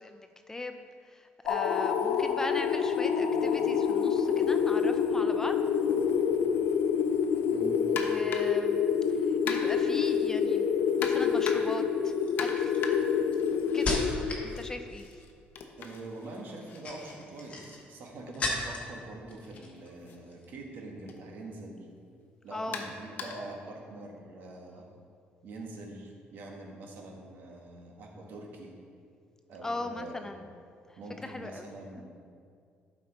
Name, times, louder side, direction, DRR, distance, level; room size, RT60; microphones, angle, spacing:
voice 1, 0.0-5.6 7.8-10.7 10.9-12.8 13.6-15.2 22.5-22.8 29.6-30.5 30.9-31.7, left 2 dB, 15° left, 7 dB, 0.3 m, -39 dB
sound 1, 1.5-14.7, left 7 dB, 85° left, 0.4 m, -27 dB
sound 2, 8.0-8.6 9.5-10.0 11.0-11.8 12.4-14.1 14.5-18.3 19.4-19.6 20.0-20.2 21.1-21.2 22.7-23.6, left 5 dB, 60° left, 0.8 m, -40 dB
sound 3, 11.1-11.4 12.1-14.5 14.8-15.3 16.5-19.0 19.3-19.9 20.2-20.5, left 2 dB, 35° left, 1.3 m, -36 dB
voice 2, 15.8-21.9 22.4-24.9 25.4-28.7 29.5-30.3 31.0-32.0, right 2 dB, 60° right, 0 dB, 1.4 m, -44 dB
12.0 x 5.1 x 3.9 m, 2.2 s
cardioid pair, 150°, 4 cm